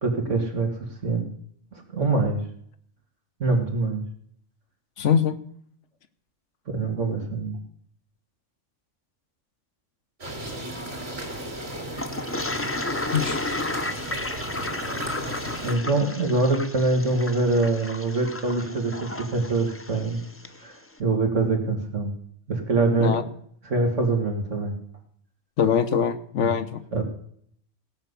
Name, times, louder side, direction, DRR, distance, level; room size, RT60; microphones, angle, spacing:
voice 1, 0.0-0.7 1.0-1.3 1.9-2.4 3.4-4.0 6.7-7.6 15.6-20.2 20.6-22.1 22.5-23.1 23.7-24.7 26.4-26.5 26.9-27.0, right 3 dB, 80° right, 3 dB, 2.8 m, -24 dB
voice 2, 5.0-5.3 13.1-13.4 23.0-23.2 25.6-26.8, left 7 dB, 75° left, 11 dB, 1.3 m, -22 dB
sound 1, 10.2-15.7, right 1 dB, 55° right, 3.3 m, -35 dB
Toilet flush, 12.0-20.6, left 2 dB, 15° left, 0.7 m, -33 dB
17.0 x 5.7 x 8.2 m, 0.65 s
omnidirectional pair, 1.2 m